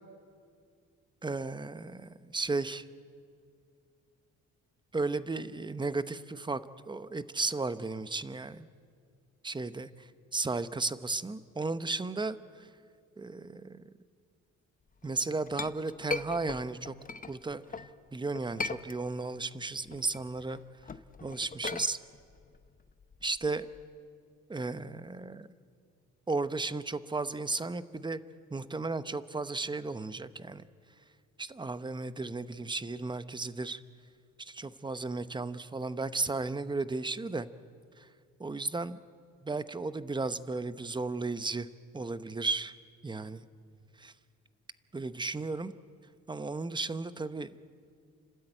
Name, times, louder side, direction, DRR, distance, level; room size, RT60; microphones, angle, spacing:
voice 1, 1.2-2.9 4.9-6.6 6.9-8.7 9.4-12.7 13.2-13.9 15.0-16.9 17.3-17.8 18.1-20.9 21.2-22.0 23.2-23.7 24.5-25.5 26.3-28.2 28.5-30.7 31.4-33.8 34.4-37.5 38.0-38.1 38.4-39.0 39.4-41.7 41.9-42.7 43.0-43.5 44.0-44.1 44.9-45.7 46.3-47.6, right 3 dB, 15° right, 13 dB, 0.8 m, -34 dB
Chink clink, 15.1-17.9 18.3-19.4 19.7-23.8, left 4 dB, 30° left, 0.8 m, -39 dB
30.0 x 12.5 x 8.9 m, 2.2 s
cardioid pair, 90°, 30 cm